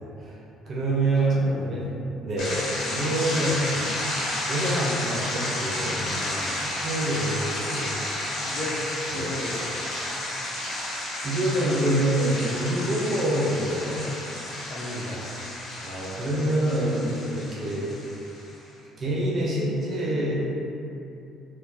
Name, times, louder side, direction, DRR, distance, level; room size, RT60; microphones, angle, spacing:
voice 1, 0.0-0.4 0.7-1.8 2.2-3.9 4.4-6.2 6.6-8.5 9.1-9.3 11.2-14.0 15.8-17.9 19.0-20.3, right 1 dB, 45° right, -6 dB, 0.8 m, -26 dB
voice 2, 1.1-1.9 3.3-3.5 6.1-6.6 8.4-9.9 14.7-15.2, left 1 dB, 45° left, -6 dB, 0.9 m, -36 dB
sound 1, 2.4-18.5, left 1 dB, 70° left, 1.1 m, -32 dB
4.2 x 2.3 x 2.8 m, 2.9 s
supercardioid pair, 75°, 0 cm